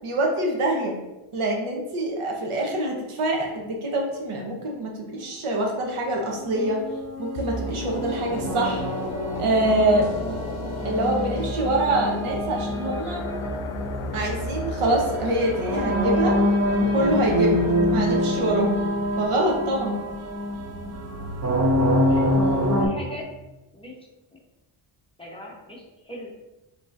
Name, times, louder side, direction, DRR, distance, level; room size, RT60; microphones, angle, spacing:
voice 1, 0.0-1.0 1.3-6.8 7.2-8.9 9.4-10.1 10.8-13.2 14.1-16.4 16.8-18.8 19.2-19.9, right 1 dB, 90° right, 1 dB, 1.0 m, -25 dB
sound 1, 6.3-22.9, equal, 35° right, 0.5 m, -26 dB
sound 2, 7.4-20.4 20.8-20.9, left 2 dB, 75° left, 0.6 m, -34 dB
voice 2, 22.1-23.3 23.7-24.0 24.3-24.4 25.2-26.3, left 1 dB, 10° left, -3 dB, 0.6 m, -39 dB
5.0 x 3.1 x 2.5 m, 1.0 s
wide cardioid pair, 155°, 50 cm